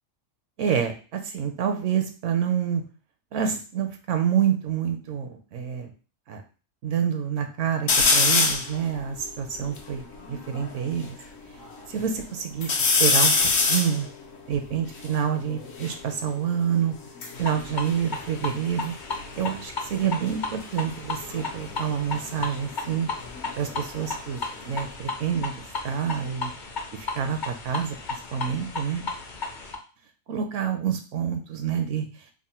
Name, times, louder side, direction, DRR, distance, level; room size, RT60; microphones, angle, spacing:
voice 1, 0.6-2.8 3.3-5.9 6.3-6.4 6.8-11.2 11.9-13.3 13.7-14.1 14.5-16.9 17.4-18.9 19.4-23.1 23.6-26.5 26.9-29.1 30.3-32.3, right 8 dB, 70° right, 6 dB, 0.9 m, -27 dB
sound 1, 7.9-8.7 9.3-9.4 9.6-11.1 11.6-12.2 12.6-16.0 16.9-18.8 19.1-19.6 21.2-23.8 24.1-24.9, left 4 dB, 70° left, 1.1 m, -25 dB
sound 2, 17.3-29.8, left 3 dB, 50° left, 0.6 m, -35 dB
3.6 x 2.1 x 4.1 m, 0.36 s
omnidirectional pair, 1.4 m